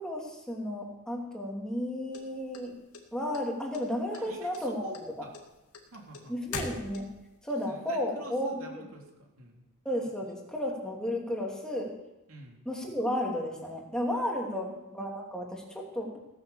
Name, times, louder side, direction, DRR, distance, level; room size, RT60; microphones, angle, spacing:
voice 1, 0.0-2.7 3.1-4.9 6.3-7.0 7.4-8.8 9.8-11.9 12.6-16.2, left 1 dB, 5° left, -2 dB, 3.0 m, -33 dB
sound 1, 2.1-3.4 3.7-4.3 4.5-7.3, left 3 dB, 85° left, 2.3 m, -40 dB
voice 2, 4.1-5.3 5.9-6.4 7.7-9.6 12.3-12.6 14.4-14.9, right 2 dB, 65° right, 1 dB, 3.3 m, -48 dB
17.5 x 9.7 x 7.2 m, 0.96 s
head